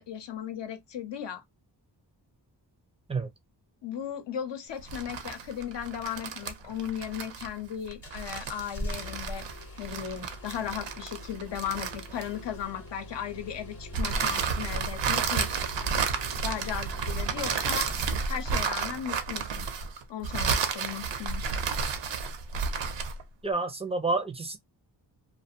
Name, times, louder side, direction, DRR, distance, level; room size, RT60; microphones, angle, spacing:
voice 1, 0.0-1.4 3.8-9.5 9.8-15.7 16.4-17.9 18.3-19.7 20.1-21.4, left 9 dB, 75° left, 0.7 m, -36 dB
sound 1, 4.8-12.6 13.9-23.2, right 6 dB, 85° right, 0.6 m, -31 dB
Engine starting, 8.0-18.6 21.3-21.4, equal, 35° left, 0.8 m, -42 dB
voice 2, 23.4-24.6, right 3 dB, 15° right, 0.3 m, -29 dB
2.4 x 2.2 x 2.6 m
wide cardioid pair, 100°, 43 cm